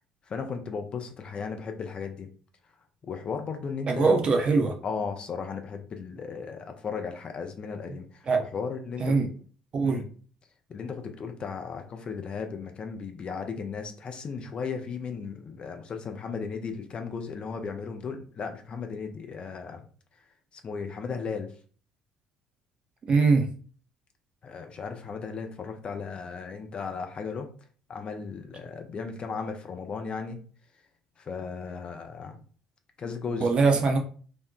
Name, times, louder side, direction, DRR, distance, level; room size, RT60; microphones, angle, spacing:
voice 1, 0.3-2.3 3.0-4.1 4.8-9.2 9.8-10.0 10.7-19.8 20.6-21.5 24.4-27.5 27.9-30.4 31.2-32.4 33.0-33.5, left 5 dB, 35° left, 0.4 m, -35 dB
voice 2, 3.9-4.7 8.3-8.4 9.0-9.3 9.7-10.0 23.1-23.5 33.4-34.0, right 4 dB, 35° right, 0.5 m, -22 dB
2.6 x 2.1 x 2.3 m
figure-of-eight pair, 55°, 3 cm